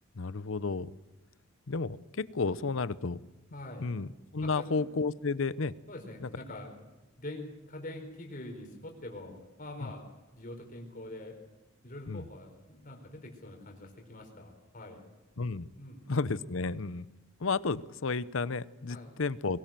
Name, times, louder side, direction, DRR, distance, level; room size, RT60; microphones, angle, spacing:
voice 1, 0.1-0.9 1.7-3.2 3.8-5.7 6.2-6.3 9.8-9.9 12.1-12.3 15.4-15.7 16.1-17.1 17.4-19.6, left 4 dB, 75° left, 16 dB, 0.8 m, -32 dB
voice 2, 3.5-3.9 4.4-4.9 5.9-6.7 7.2-10.1 10.4-11.4 11.8-15.0 15.8-16.0 18.9-19.1, left 1 dB, 40° left, 3 dB, 4.5 m, -44 dB
22.5 x 17.5 x 7.6 m, 1.1 s
head